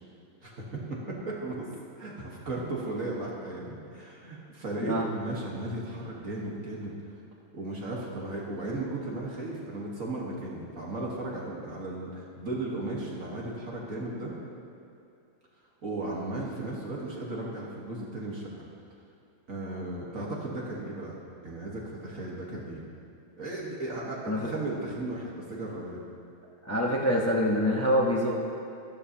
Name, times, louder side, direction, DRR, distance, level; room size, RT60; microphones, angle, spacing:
voice 1, 0.4-6.9 7.5-14.3 15.8-18.5 19.5-21.1 21.4-22.8 23.4-26.0, right 2 dB, 50° right, -4 dB, 1.7 m, -35 dB
voice 2, 26.6-28.3, equal, 15° left, -2 dB, 0.6 m, -25 dB
12.5 x 12.0 x 2.8 m, 2.7 s
omnidirectional pair, 2.0 m